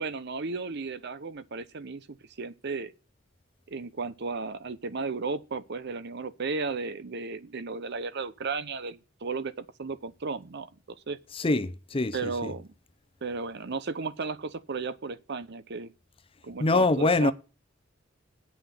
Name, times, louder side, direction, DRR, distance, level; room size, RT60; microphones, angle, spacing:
voice 1, 0.0-2.9 3.7-10.7 11.1-11.2 12.1-12.7 13.2-15.9 16.4-17.3, right 4 dB, 60° right, 0.8 m, -34 dB
voice 2, 11.3-12.5 16.6-17.3, left 2 dB, 30° left, 0.6 m, -24 dB
8.6 x 5.8 x 7.6 m
head